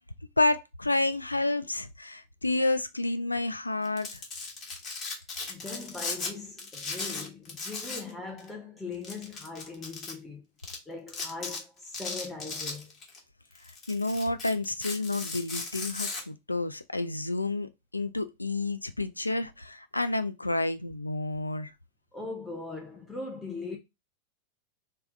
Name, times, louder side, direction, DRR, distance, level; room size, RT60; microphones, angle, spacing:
voice 1, 0.4-4.2 13.9-21.7, left 2 dB, 85° left, 0.3 m, -30 dB
Domestic sounds home sounds, 3.8-6.3 6.6-8.1 8.4-8.5 9.0-10.1 10.6-10.8 11.1-11.6 11.9-13.2 13.6-16.2, left 4 dB, 30° left, 1.1 m, -36 dB
voice 2, 5.5-10.5 10.9-12.9 22.1-23.8, left 3 dB, 10° left, 0.6 m, -40 dB
3.4 x 2.2 x 3.7 m
figure-of-eight pair, 90°, 0 cm